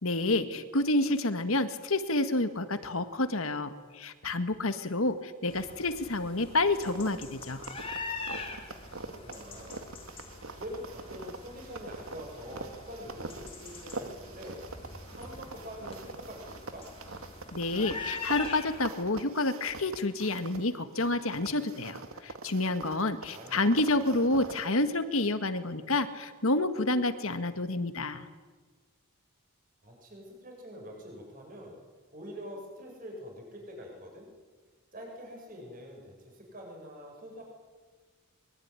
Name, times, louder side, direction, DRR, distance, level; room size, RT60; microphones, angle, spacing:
voice 1, 0.0-7.6 17.5-28.2, left 2 dB, 75° left, 10 dB, 1.8 m, -29 dB
sound 1, 5.5-18.8, left 3 dB, 25° left, 3.4 m, -43 dB
sound 2, 6.7-20.7 20.9-24.7, right 3 dB, 75° right, 2.1 m, -44 dB
voice 2, 9.0-9.8 10.5-14.6 15.1-16.8 23.3-23.9 29.8-31.8 32.1-34.3 34.9-37.4, equal, 40° right, 0 dB, 7.7 m, -45 dB
23.0 x 23.0 x 9.9 m, 1.4 s
head